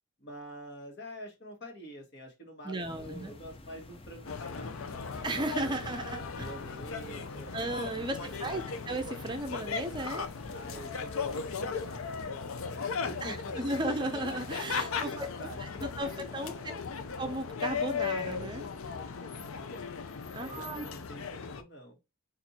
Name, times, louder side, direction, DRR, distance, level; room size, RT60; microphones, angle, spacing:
voice 1, 0.2-5.9 6.3-7.6 7.9-8.8 10.5-13.8 14.7-15.9 16.4-17.1 20.4-22.0, equal, 55° left, 1.4 m, -48 dB
voice 2, 2.6-3.3 5.2-6.5 7.5-10.3 13.2-15.5 15.8-16.7 17.2-18.6 20.3-20.9, right 2 dB, 20° right, 0.5 m, -35 dB
sound 1, 2.8-12.2, left 2 dB, 25° left, 0.5 m, -50 dB
sound 2, 4.2-21.6, left 5 dB, 90° left, 0.6 m, -37 dB
4.3 x 2.6 x 4.2 m
head